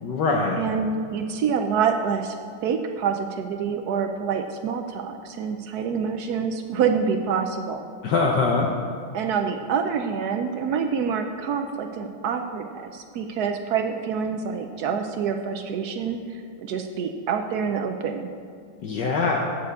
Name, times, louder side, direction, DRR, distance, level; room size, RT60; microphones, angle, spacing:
voice 1, 0.0-0.6 8.0-8.7 18.8-19.4, left 4 dB, 65° left, 0 dB, 1.3 m, -22 dB
voice 2, 0.6-7.9 9.1-18.3, right 6 dB, 75° right, 5 dB, 0.9 m, -27 dB
7.7 x 6.8 x 8.2 m, 2.2 s
omnidirectional pair, 2.3 m